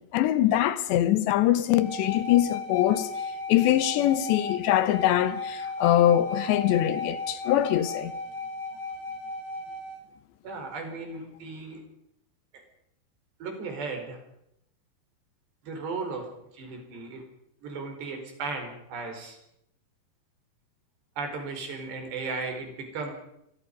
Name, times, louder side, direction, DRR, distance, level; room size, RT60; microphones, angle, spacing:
voice 1, 0.0-3.1 3.5-8.1, left 12 dB, 85° left, 3.4 m, -23 dB
sound 1, 1.7-10.0, left 3 dB, 35° left, 4.8 m, -35 dB
voice 2, 10.4-11.8 12.5-12.6 13.4-14.2 15.6-16.3 16.5-17.2 17.6-19.4 21.2-23.1, right 4 dB, 75° right, 6.9 m, -35 dB
25.5 x 23.0 x 5.4 m
omnidirectional pair, 5.0 m